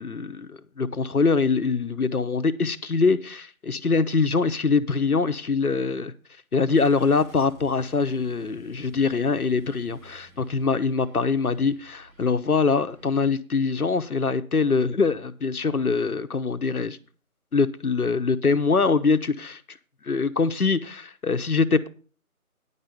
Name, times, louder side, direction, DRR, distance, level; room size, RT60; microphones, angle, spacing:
voice 1, 0.0-6.1 6.5-17.0 17.5-19.8 20.0-21.9, left 4 dB, 80° left, 1.0 m, -23 dB
Car / Engine starting, 6.7-13.2, equal, 70° right, 3.8 m, -52 dB
10.0 x 5.5 x 6.9 m
figure-of-eight pair, 175°, 44 cm